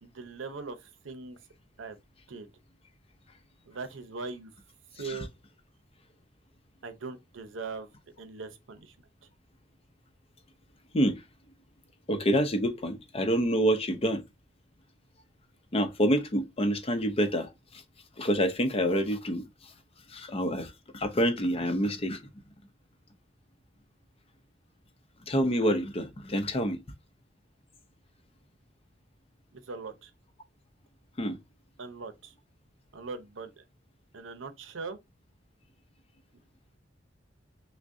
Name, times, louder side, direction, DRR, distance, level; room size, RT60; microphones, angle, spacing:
voice 1, 0.0-1.4 1.8-2.0 2.3-2.5 3.7-4.5 4.9-5.3 6.8-7.9 8.2-8.9 29.5-30.1 31.8-32.3 32.9-33.6 34.1-35.0, right 4 dB, 90° right, 0.7 m, -40 dB
voice 2, 12.1-14.2 15.7-17.8 18.2-19.7 20.1-22.2 25.2-26.8 31.2-31.4, equal, 30° left, 0.6 m, -27 dB
6.1 x 2.1 x 2.6 m
head